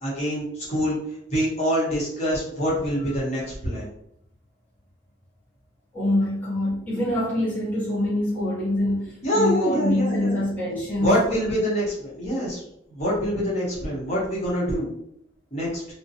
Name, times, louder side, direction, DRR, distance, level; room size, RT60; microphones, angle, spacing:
voice 1, 0.0-1.0 1.3-3.9 9.2-10.4 11.0-12.6 12.9-14.9 15.5-15.8, equal, 35° left, -6 dB, 1.0 m, -25 dB
voice 2, 5.9-11.2, left 1 dB, 10° left, -10 dB, 0.8 m, -25 dB
2.5 x 2.2 x 2.7 m, 0.73 s
head